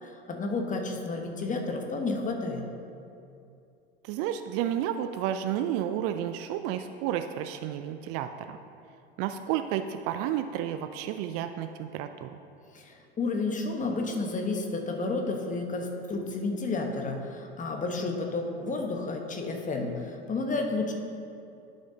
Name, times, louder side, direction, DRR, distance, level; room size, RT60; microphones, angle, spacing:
voice 1, 0.0-2.7 12.7-20.9, left 3 dB, 25° left, 3 dB, 1.1 m, -31 dB
voice 2, 4.0-8.6 9.2-12.4, right 10 dB, 45° right, 9 dB, 0.4 m, -31 dB
11.5 x 6.5 x 2.8 m, 2.6 s
hypercardioid pair, 80°, 32 cm